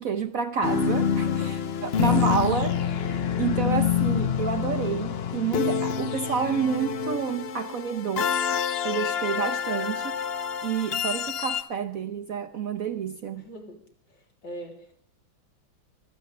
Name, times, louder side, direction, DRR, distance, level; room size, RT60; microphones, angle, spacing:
voice 1, 0.0-8.4 8.8-10.2 10.6-13.4, right 7 dB, 55° right, 1.0 m, -29 dB
sound 1, 0.6-11.6, left 7 dB, 90° left, 0.5 m, -27 dB
voice 2, 1.1-1.6 13.3-13.8 14.1-15.0, equal, 65° left, 4.0 m, -42 dB
25.5 x 16.0 x 3.3 m
omnidirectional pair, 2.1 m